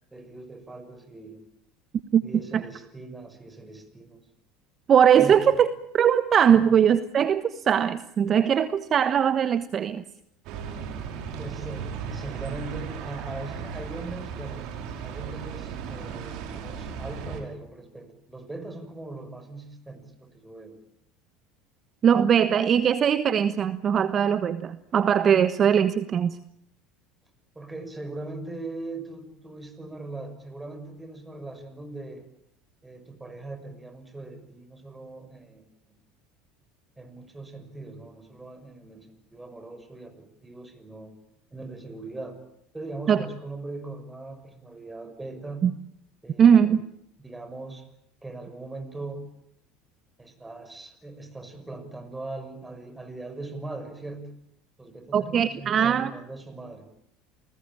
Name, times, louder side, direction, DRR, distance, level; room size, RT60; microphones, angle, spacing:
voice 1, 0.1-1.4 2.2-4.3 5.2-5.6 6.5-6.7 11.4-14.7 15.0-20.8 27.5-32.3 32.8-35.7 37.0-41.1 41.5-42.4 42.7-45.7 46.2-46.8 47.2-47.9 48.2-49.3 50.2-54.3 54.8-56.9, right 2 dB, 10° right, 10 dB, 6.3 m, -40 dB
voice 2, 4.9-5.7 5.9-10.0 22.0-26.4 43.1-43.2 45.6-45.7 46.4-46.8 55.1-56.1, right 8 dB, 40° right, 12 dB, 1.2 m, -20 dB
sound 1, 10.4-17.4, right 6 dB, 60° right, 5.8 m, -36 dB
29.5 x 20.0 x 9.0 m, 0.75 s
hypercardioid pair, 85°, 0 cm